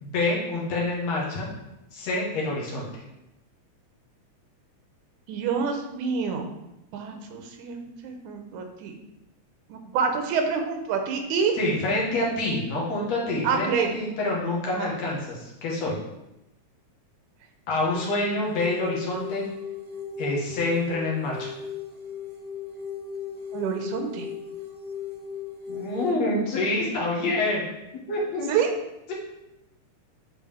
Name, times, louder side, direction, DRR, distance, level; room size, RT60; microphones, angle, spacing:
voice 1, 0.0-1.5 1.9-3.0 11.6-16.0 17.7-19.4 20.2-21.5 25.7-27.6 28.1-28.5, left 2 dB, 65° left, -3 dB, 2.4 m, -27 dB
voice 2, 5.3-6.5 6.9-9.0 9.7-11.6 13.4-13.9 14.7-14.9 23.5-24.3 28.5-28.7, right 6 dB, 85° right, 4 dB, 2.2 m, -27 dB
sound 1, 17.9-26.1, left 6 dB, 65° right, 1.7 m, -37 dB
9.0 x 3.7 x 3.4 m, 0.91 s
omnidirectional pair, 3.4 m